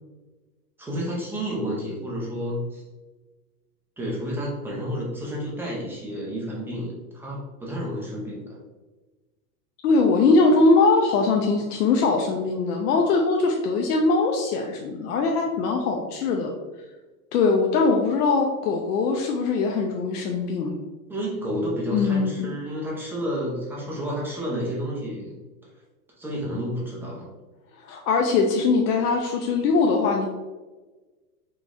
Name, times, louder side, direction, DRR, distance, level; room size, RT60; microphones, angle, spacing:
voice 1, 0.8-2.8 4.0-8.6 21.1-25.4 26.2-27.3, equal, 5° right, -5 dB, 0.4 m, -30 dB
voice 2, 9.8-16.5 17.3-20.8 21.9-22.5 27.8-30.3, left 3 dB, 85° left, 1 dB, 0.6 m, -21 dB
3.8 x 3.0 x 2.5 m, 1.2 s
supercardioid pair, 130°, 46 cm